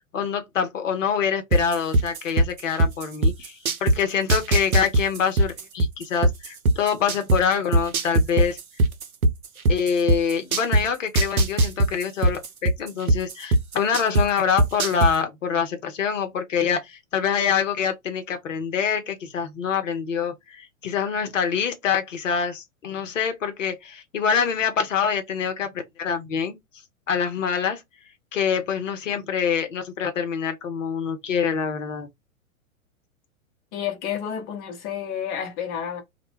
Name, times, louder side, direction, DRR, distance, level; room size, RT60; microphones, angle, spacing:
voice 1, 0.1-8.6 9.7-25.7 26.0-26.6 27.1-27.8 28.3-32.1, left 7 dB, 65° left, 0.7 m, -25 dB
sound 1, 1.5-4.0 4.3-7.4 7.7-10.8 11.1-14.2 14.6-15.1, right 1 dB, 90° right, 0.5 m, -19 dB
voice 2, 33.7-36.0, left 9 dB, 20° left, 0.7 m, -30 dB
2.1 x 2.1 x 3.1 m
figure-of-eight pair, 105°, 42 cm